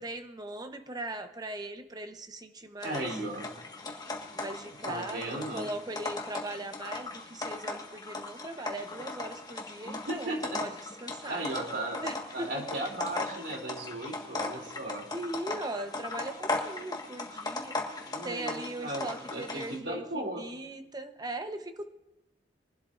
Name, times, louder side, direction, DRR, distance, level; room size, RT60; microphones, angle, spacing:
voice 1, 0.0-3.0 4.3-10.7 11.0-11.5 12.0-12.8 15.1-17.8 18.2-21.9, right 2 dB, 25° right, 7 dB, 1.0 m, -39 dB
sound 1, 2.8-19.8, left 3 dB, 25° left, 1.6 m, -38 dB
voice 2, 2.8-3.5 4.9-5.7 9.8-10.6 11.3-12.0 12.3-15.1 18.1-20.5, right 1 dB, 85° right, 1 dB, 3.2 m, -36 dB
23.0 x 12.0 x 2.6 m, 0.96 s
head